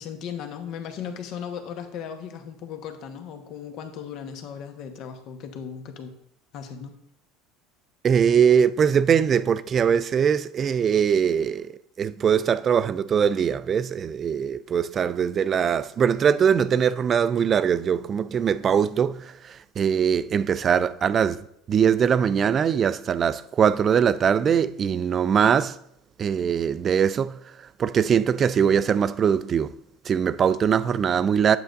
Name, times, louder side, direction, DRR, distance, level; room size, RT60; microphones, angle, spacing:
voice 1, 0.0-6.2 6.5-7.0, left 7 dB, 60° left, 1.1 m, -37 dB
voice 2, 8.0-25.8 26.2-29.7 30.0-31.6, right 7 dB, 40° right, 0.4 m, -22 dB
8.7 x 8.1 x 2.6 m
hypercardioid pair, 85°, 0 cm